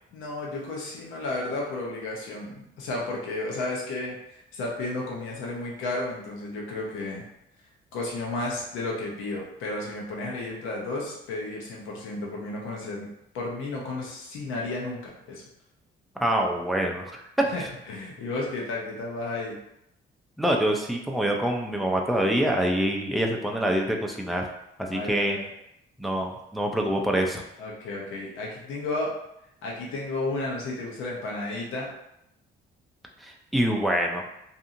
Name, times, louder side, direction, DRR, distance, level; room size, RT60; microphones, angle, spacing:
voice 1, 0.1-4.2 4.5-7.3 7.9-13.1 13.3-15.4 17.5-19.6 24.9-25.5 27.6-29.1 29.6-31.9, left 2 dB, 90° left, -3 dB, 0.8 m, -32 dB
voice 2, 16.2-17.1 17.4-17.5 20.4-24.5 24.9-25.4 26.0-27.4 33.2-34.2, right 1 dB, ahead, 0 dB, 0.4 m, -25 dB
2.7 x 2.6 x 2.5 m, 0.81 s
cardioid pair, 90°, 20 cm